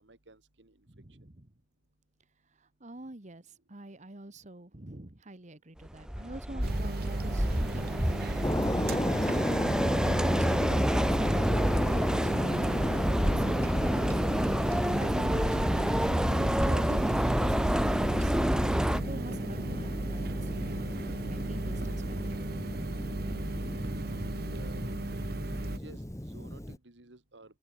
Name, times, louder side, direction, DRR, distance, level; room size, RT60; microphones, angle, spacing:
voice 1, 0.0-0.8 24.4-25.1 25.8-27.6, right 2 dB, 85° right, 2.4 m, -53 dB
voice 2, 0.9-1.5 2.6-18.6 18.9-22.5 23.4-24.4, right 1 dB, 40° right, 1.7 m, -46 dB
sound 1, 5.9-19.0, equal, 5° right, 0.6 m, -28 dB
sound 2, 6.6-25.8, right 2 dB, 60° right, 1.2 m, -35 dB
sound 3, 8.4-26.8, left 1 dB, 15° left, 1.5 m, -34 dB
head